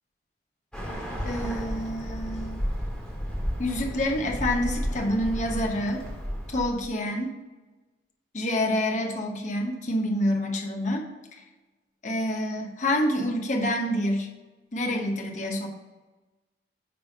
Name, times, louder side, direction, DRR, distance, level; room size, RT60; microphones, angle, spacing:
Bird, 0.7-6.9, equal, 5° left, 1.8 m, -32 dB
voice 1, 1.2-2.6 3.6-6.0 6.5-7.3 8.3-11.1 12.0-14.3 14.7-15.7, left 1 dB, 45° left, 2 dB, 1.0 m, -27 dB
9.4 x 3.4 x 5.2 m, 1.2 s
head